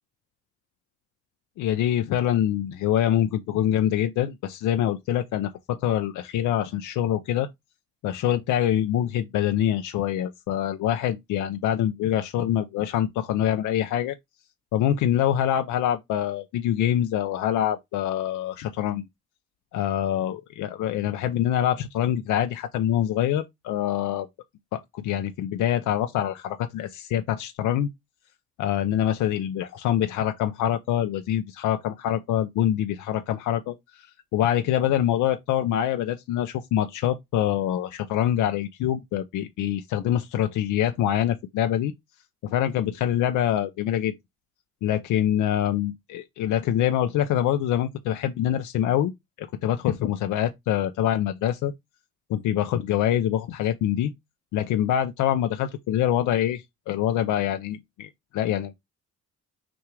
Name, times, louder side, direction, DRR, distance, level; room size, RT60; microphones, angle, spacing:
voice 1, 1.6-7.5 8.0-14.1 14.7-19.1 19.7-24.3 24.7-27.9 28.6-34.1 34.3-41.9 42.4-44.1 44.8-49.1 49.4-51.7 52.3-54.1 54.5-58.7, left 11 dB, 80° left, 0.5 m, -25 dB
6.0 x 2.4 x 3.1 m
cardioid pair, 90°, 30 cm